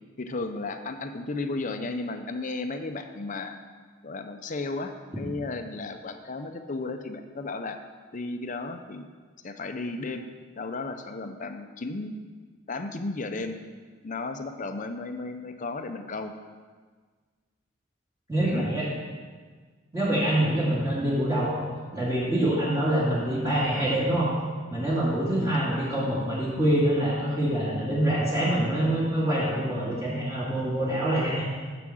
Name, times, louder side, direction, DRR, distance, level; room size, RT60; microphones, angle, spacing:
voice 1, 0.2-3.6 4.0-7.8 8.1-9.1 9.4-10.3 10.5-12.2 12.7-13.6 14.0-16.3 18.4-18.7, left 3 dB, 40° left, 7 dB, 0.6 m, -34 dB
voice 2, 18.3-18.9 19.9-21.6 21.9-24.3 24.7-31.5, right 1 dB, 15° right, -8 dB, 2.2 m, -25 dB
7.3 x 5.9 x 7.7 m, 1.5 s
head